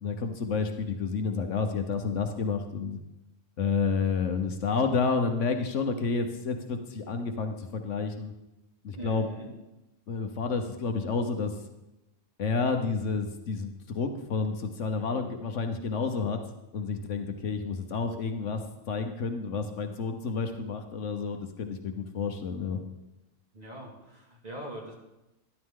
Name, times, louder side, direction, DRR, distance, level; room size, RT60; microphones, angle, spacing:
voice 1, 0.0-3.0 3.6-8.3 8.8-9.3 10.1-11.5 12.4-16.4 16.7-18.6 18.9-22.8, left 4 dB, 65° left, 6 dB, 1.2 m, -30 dB
voice 2, 9.0-9.5 23.5-24.9, right 1 dB, 30° right, -2 dB, 2.3 m, -40 dB
12.5 x 11.0 x 3.7 m, 0.94 s
omnidirectional pair, 1.4 m